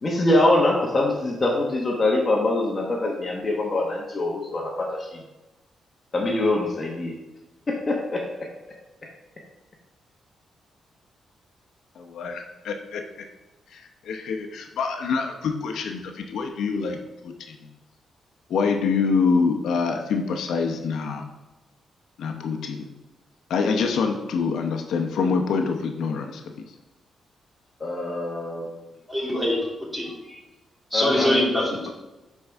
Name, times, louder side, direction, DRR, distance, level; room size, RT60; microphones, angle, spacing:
voice 1, 0.0-5.2 6.1-7.2 7.7-8.5 27.8-28.7 30.9-31.4, left 2 dB, 30° left, -1 dB, 1.2 m, -24 dB
voice 2, 12.0-13.0 13.7-17.0 17.2-17.6 18.5-21.2 22.2-22.9 23.5-26.4 31.9-32.0, left 5 dB, 80° left, 4 dB, 0.8 m, -25 dB
voice 3, 29.1-29.6 29.9-30.4 30.9-31.9, left 1 dB, 5° right, -5 dB, 2.7 m, -24 dB
10.5 x 4.6 x 3.5 m, 1.0 s
cardioid pair, 120°, 0 cm